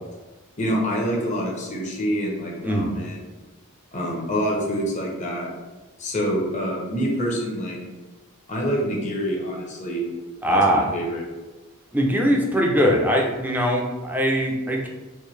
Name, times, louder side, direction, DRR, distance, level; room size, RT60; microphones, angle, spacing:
voice 1, 0.6-3.2 3.9-5.5 6.0-7.8 8.5-10.0 10.5-11.2, equal, 35° left, -2 dB, 0.9 m, -26 dB
voice 2, 10.4-10.9 11.9-14.9, equal, 10° right, 0 dB, 0.5 m, -21 dB
4.5 x 2.6 x 3.2 m, 1.2 s
head